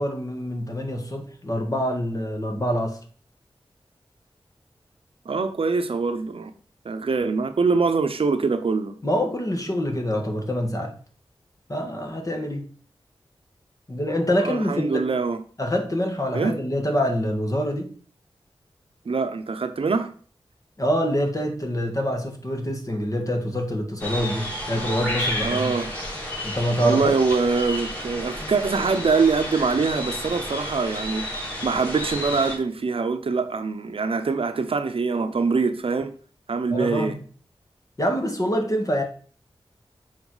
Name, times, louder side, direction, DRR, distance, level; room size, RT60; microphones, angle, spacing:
voice 1, 0.0-3.0 9.0-11.0 11.7-12.7 13.9-15.1 15.6-17.9 20.8-25.7 26.4-27.1 31.4-31.5 36.7-37.2 38.0-39.0, equal, 35° left, 1.8 m, -25 dB
voice 2, 5.2-6.5 6.8-9.0 14.4-15.4 16.3-16.6 19.0-20.1 25.4-25.9 26.8-36.1 36.5-37.1, right 4 dB, 70° right, 0.7 m, -24 dB
sound 1, 24.0-32.6, left 1 dB, 15° left, 3.9 m, -31 dB
7.1 x 4.4 x 4.9 m
wide cardioid pair, 60°, 10 cm